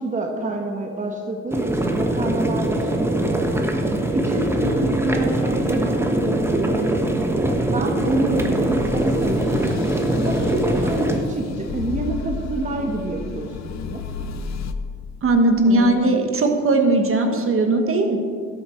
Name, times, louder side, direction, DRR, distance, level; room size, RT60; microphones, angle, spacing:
voice 1, 0.0-3.4 4.1-7.2 7.7-9.7 10.2-14.0 15.6-16.0, right 2 dB, 25° right, 2 dB, 1.1 m, -28 dB
sound 1, 1.5-11.2, right 1 dB, 10° right, 1.2 m, -22 dB
sound 2, 4.5-14.7, left 5 dB, 60° left, 0.7 m, -34 dB
voice 2, 15.2-18.2, right 2 dB, 45° right, 4 dB, 1.4 m, -18 dB
12.5 x 8.1 x 4.5 m, 2.1 s
cardioid pair, 90°, 30 cm